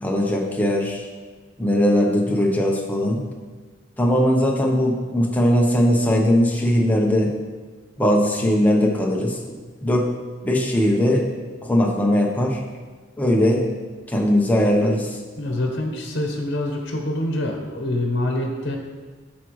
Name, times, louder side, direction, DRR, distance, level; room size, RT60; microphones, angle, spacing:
voice 1, 0.0-1.0 1.6-3.2 4.0-7.3 8.0-10.1 10.4-11.3 11.6-12.6 13.2-13.6 14.1-15.2, equal, 10° left, -1 dB, 0.9 m, -19 dB
voice 2, 15.4-18.8, left 1 dB, 60° left, 1 dB, 1.1 m, -25 dB
9.9 x 6.2 x 3.1 m, 1.4 s
head